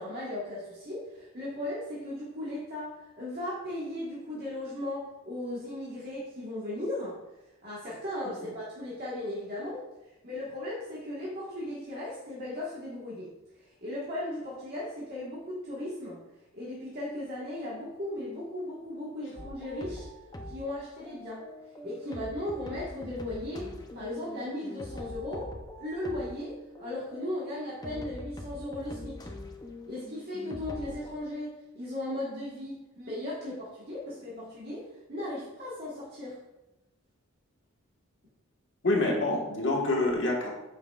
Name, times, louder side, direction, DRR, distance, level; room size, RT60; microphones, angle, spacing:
voice 1, 0.0-7.2 7.6-9.8 10.2-13.3 13.8-16.2 16.5-20.1 20.5-21.4 21.8-25.5 25.7-29.3 29.9-36.4, left 1 dB, 45° right, -7 dB, 1.4 m, -37 dB
sound 1, 19.4-31.1, left 1 dB, 20° left, 0.5 m, -44 dB
voice 2, 38.8-40.5, left 2 dB, 55° left, -1 dB, 1.5 m, -26 dB
8.8 x 5.7 x 2.4 m, 1.0 s
head